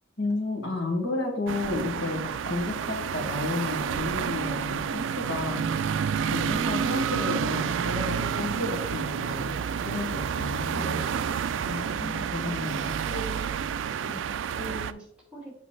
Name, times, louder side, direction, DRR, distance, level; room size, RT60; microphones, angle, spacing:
voice 1, 0.2-5.9 6.2-9.6 9.8-11.0 11.6-12.9, left 2 dB, 85° left, -1 dB, 1.9 m, -32 dB
sound 1, 1.5-14.9, right 7 dB, 75° right, 0.3 m, -29 dB
voice 2, 10.7-11.0 12.4-13.5 14.0-15.5, equal, 5° right, -5 dB, 2.3 m, -41 dB
6.3 x 5.3 x 3.2 m, 0.72 s
head